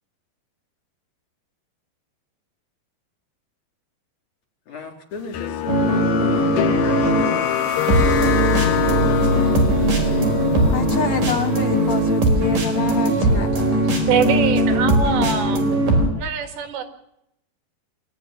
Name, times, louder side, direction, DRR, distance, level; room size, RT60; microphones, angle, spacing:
voice 1, 4.7-7.5, left 5 dB, 45° left, 3 dB, 4.6 m, -35 dB
sound 1, 5.3-12.2, left 12 dB, 80° left, 1.8 m, -25 dB
sound 2, 5.7-16.1, right 1 dB, 50° right, 5.7 m, -19 dB
voice 2, 9.9-10.3 10.7-13.9, left 8 dB, 65° left, 5 dB, 1.8 m, -28 dB
voice 3, 14.1-15.7 16.2-16.8, right 7 dB, 80° right, 7 dB, 4.4 m, -23 dB
24.0 x 14.5 x 9.9 m, 0.81 s
omnidirectional pair, 5.0 m